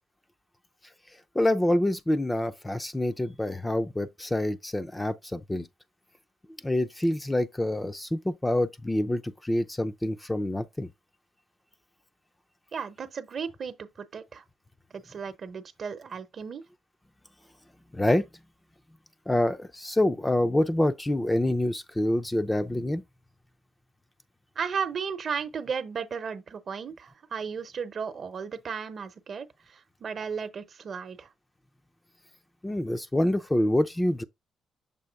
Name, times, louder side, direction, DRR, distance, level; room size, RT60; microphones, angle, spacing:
voice 1, 1.3-5.7 6.6-10.9 17.9-18.3 19.3-23.0 32.6-34.2, left 1 dB, 15° left, 0.5 m, -26 dB
voice 2, 12.7-14.4 14.9-16.6 24.6-31.3, right 6 dB, 50° right, 0.8 m, -35 dB
6.9 x 2.7 x 5.2 m
cardioid pair, 90°, 0 cm